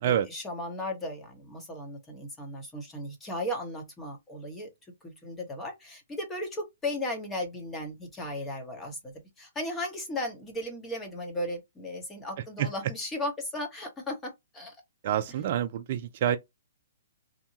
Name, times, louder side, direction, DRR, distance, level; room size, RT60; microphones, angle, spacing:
voice 1, 0.0-4.7 5.0-14.8, left 1 dB, 15° left, 1.0 m, -36 dB
voice 2, 15.0-16.4, right 10 dB, 50° right, 0.4 m, -27 dB
2.8 x 2.2 x 2.7 m
hypercardioid pair, 140°, 0 cm